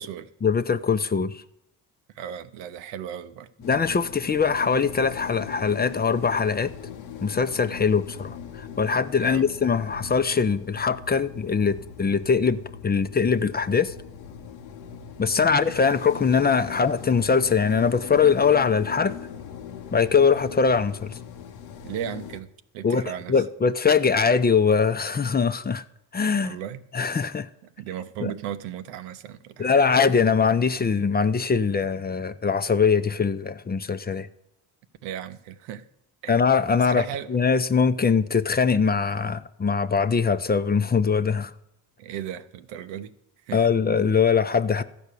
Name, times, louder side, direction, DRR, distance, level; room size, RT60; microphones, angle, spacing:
voice 1, 0.4-1.4 3.7-6.7 7.2-13.9 15.2-19.1 19.9-21.2 22.8-23.0 23.3-25.8 26.1-26.6 26.9-27.5 28.2-28.3 29.6-34.3 36.3-41.5 43.5-44.8, left 5 dB, 20° left, 0.6 m, -22 dB
voice 2, 2.1-3.5 9.2-9.5 21.8-23.4 26.4-26.9 27.8-29.8 35.0-35.9 36.2-36.3 36.8-37.3 42.0-43.1 43.5-43.7, right 10 dB, 85° right, 0.8 m, -36 dB
sound 1, 3.6-22.4, left 8 dB, 85° left, 1.1 m, -40 dB
14.0 x 5.1 x 8.3 m
supercardioid pair, 70°, 42 cm